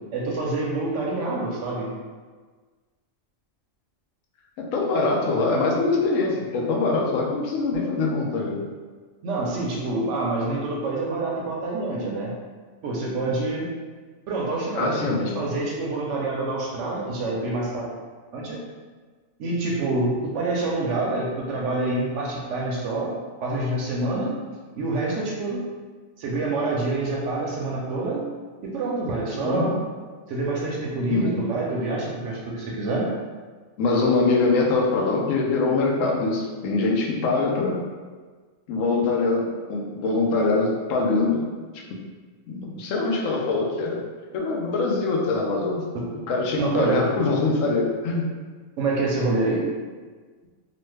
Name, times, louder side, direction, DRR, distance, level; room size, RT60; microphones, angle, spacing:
voice 1, 0.1-1.9 9.2-12.3 12.8-13.7 14.3-17.8 18.3-18.6 19.4-23.1 23.4-24.3 24.8-25.6 26.2-28.2 28.6-29.8 30.3-33.1 45.9-46.0 46.5-47.0 48.8-49.6, right 2 dB, 70° right, -2 dB, 0.9 m, -26 dB
voice 2, 4.6-8.6 14.8-15.5 29.4-29.7 31.1-31.4 33.8-37.8 38.7-41.5 42.5-44.0 44.3-45.8 46.3-48.2, left 3 dB, 75° left, -2 dB, 0.9 m, -23 dB
3.0 x 2.1 x 3.2 m, 1.4 s
omnidirectional pair, 1.4 m